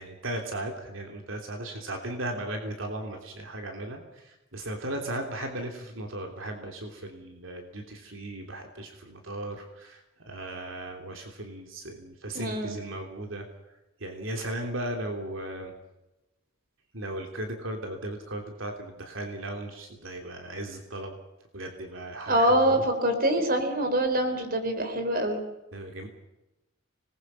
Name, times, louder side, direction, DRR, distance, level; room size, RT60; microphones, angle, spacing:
voice 1, 0.0-13.5 14.0-15.7 16.9-21.2 21.5-22.8 25.7-26.1, right 1 dB, 75° right, 3 dB, 3.1 m, -36 dB
voice 2, 12.3-12.8 22.3-25.4, right 1 dB, 45° right, 7 dB, 4.0 m, -25 dB
26.5 x 20.5 x 5.6 m, 0.97 s
head